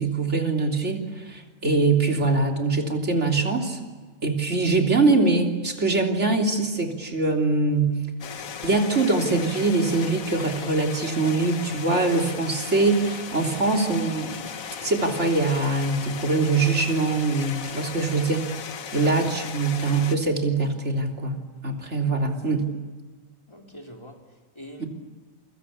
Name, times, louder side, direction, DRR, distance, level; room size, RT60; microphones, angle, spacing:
voice 1, 0.0-3.8 4.2-8.0 8.6-14.4 14.8-18.5 18.9-21.4 21.6-22.7 24.8-24.9, right 3 dB, 55° right, 3.6 m, -23 dB
sound 1, 8.2-20.2, left 7 dB, 70° left, 1.6 m, -36 dB
voice 2, 23.5-24.9, equal, 20° left, 3.6 m, -44 dB
28.5 x 23.5 x 8.6 m
omnidirectional pair, 1.5 m